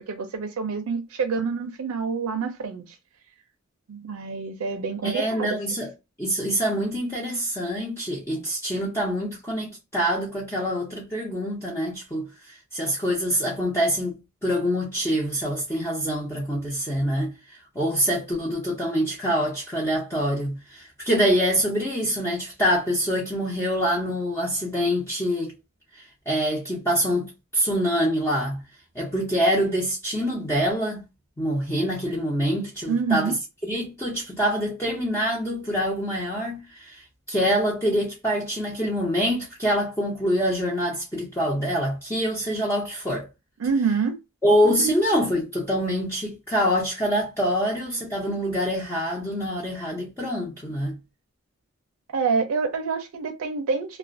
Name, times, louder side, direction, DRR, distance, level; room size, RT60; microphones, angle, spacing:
voice 1, 0.0-3.0 3.9-5.6 32.9-33.4 43.6-44.2 44.8-44.9 52.1-54.0, right 5 dB, 85° right, 0.4 m, -27 dB
voice 2, 5.0-5.9 6.2-17.3 17.7-25.5 26.0-28.6 28.9-31.0 31.4-33.3 33.6-37.0 37.3-43.3 44.4-51.0, equal, 10° left, 0.6 m, -25 dB
2.4 x 2.1 x 2.4 m
head